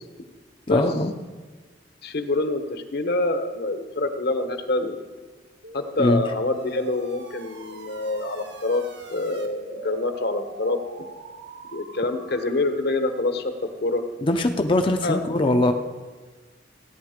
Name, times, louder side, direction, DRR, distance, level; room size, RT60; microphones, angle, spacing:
voice 1, 0.7-1.1 6.0-6.2 14.2-15.7, left 2 dB, 30° left, 5 dB, 0.6 m, -21 dB
voice 2, 2.0-5.0 5.7-8.8 9.1-11.1 11.7-14.0 15.0-15.2, left 2 dB, 65° left, 7 dB, 1.2 m, -26 dB
sound 1, 5.6-13.1, right 2 dB, 75° right, 1.6 m, -42 dB
16.5 x 9.9 x 5.1 m, 1.4 s
head